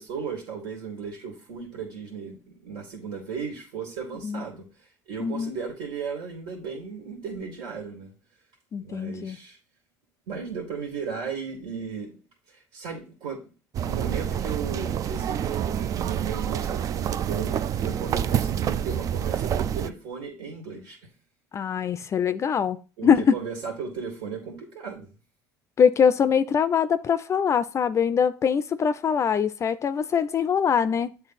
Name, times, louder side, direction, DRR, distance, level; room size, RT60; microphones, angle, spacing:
voice 1, 0.0-8.1 8.8-9.6 10.3-12.1 12.5-13.5 13.8-21.0 23.0-25.1, right 6 dB, 80° right, 2.1 m, -36 dB
voice 2, 5.2-5.6 8.7-9.4 21.5-23.4 25.8-31.1, left 7 dB, 40° left, 0.4 m, -23 dB
sound 1, 13.7-19.9, right 9 dB, 50° right, 0.4 m, -27 dB
8.0 x 3.3 x 4.1 m
supercardioid pair, 85°, 8 cm